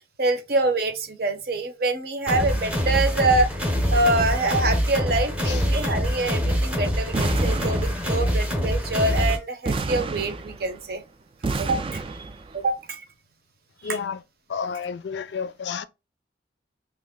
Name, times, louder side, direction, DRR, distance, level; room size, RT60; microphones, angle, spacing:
voice 1, 0.2-3.5 3.9-11.0 11.6-12.0 12.5-13.0 13.8-14.0, right 2 dB, 55° right, 0.7 m, -25 dB
sound 1, 2.3-9.4, equal, 5° right, 0.7 m, -24 dB
sound 2, 7.1-8.4 9.6-10.9 11.4-12.6, right 3 dB, 30° right, 0.3 m, -30 dB
voice 2, 13.8-14.2 14.5-15.8, left 6 dB, 75° left, 0.4 m, -31 dB
3.0 x 2.5 x 3.5 m
head